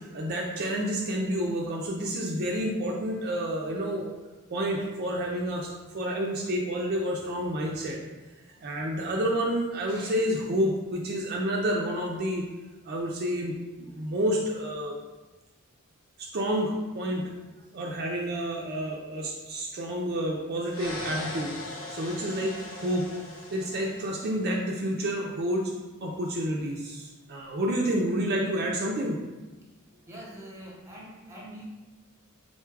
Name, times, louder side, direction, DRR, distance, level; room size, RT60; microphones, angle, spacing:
voice 1, 0.0-4.1 4.5-8.0 8.6-12.4 12.8-15.0 16.2-17.3 17.7-23.1 23.5-25.7 26.0-29.2, equal, 50° right, -1 dB, 0.4 m, -29 dB
sound 1, 20.7-24.6, left 2 dB, 75° left, 1.0 m, -39 dB
voice 2, 30.1-31.6, right 1 dB, 15° right, -3 dB, 0.9 m, -44 dB
4.2 x 2.3 x 4.5 m, 1.2 s
head